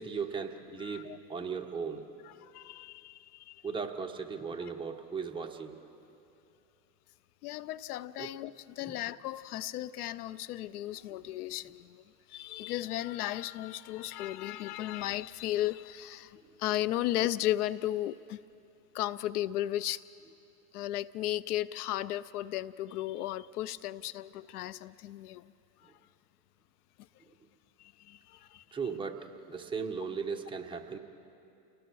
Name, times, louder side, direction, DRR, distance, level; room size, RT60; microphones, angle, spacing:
voice 1, 0.0-2.0 3.6-5.7 8.2-8.3 8.8-9.0 28.7-31.0, right 5 dB, 10° right, 1.3 m, -37 dB
voice 2, 0.8-1.2 2.2-3.6 4.6-4.7 7.4-12.0 12.3-18.4 18.9-20.0 20.7-25.5 25.8-25.9 27.8-28.6, left 14 dB, 70° left, 0.6 m, -35 dB
30.0 x 19.5 x 4.7 m
hypercardioid pair, 120°, 48 cm